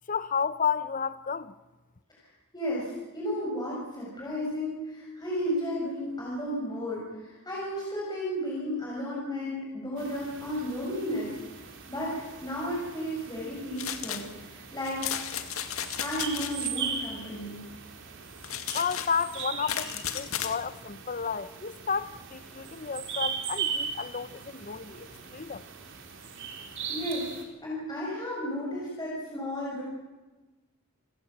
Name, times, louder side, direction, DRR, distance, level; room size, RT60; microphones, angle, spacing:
voice 1, 0.1-1.5 18.7-25.6, left 6 dB, 40° left, 0.8 m, -32 dB
voice 2, 2.5-11.6 11.9-15.1 16.0-17.6 26.9-27.3 27.6-29.8, equal, 20° left, 7.0 m, -33 dB
sound 1, 10.0-27.4, right 6 dB, 60° right, 4.2 m, -39 dB
sound 2, 13.8-14.3 14.8-16.7 18.4-20.6, left 9 dB, 75° left, 2.1 m, -34 dB
28.5 x 17.0 x 8.9 m
head